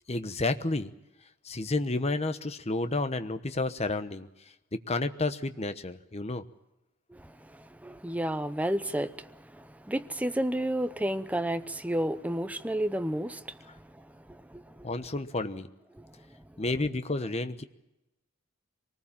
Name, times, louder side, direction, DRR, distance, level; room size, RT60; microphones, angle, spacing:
voice 1, 0.1-0.9 1.4-4.3 4.9-6.4 14.8-15.7 16.6-17.6, left 2 dB, 30° left, 1.1 m, -30 dB
voice 2, 7.1-14.9 16.0-16.6, right 1 dB, 5° right, 0.8 m, -32 dB
24.5 x 19.0 x 7.2 m
head